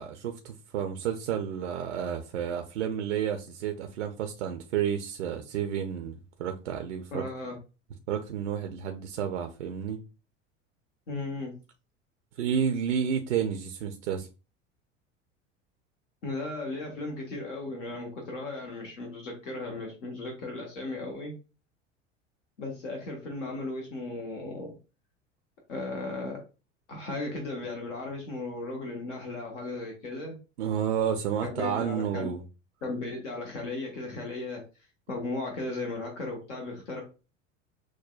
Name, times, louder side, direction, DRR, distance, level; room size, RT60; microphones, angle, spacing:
voice 1, 0.0-7.2 8.1-10.0 12.4-14.3 30.6-32.4, right 8 dB, 70° right, 0.5 m, -31 dB
voice 2, 7.1-7.6 11.1-11.5 16.2-21.4 22.6-24.8 25.7-26.4 26.9-30.4 31.4-32.3 32.8-37.0, left 2 dB, 70° left, 1.1 m, -36 dB
6.1 x 2.1 x 2.3 m
figure-of-eight pair, 75°, 37 cm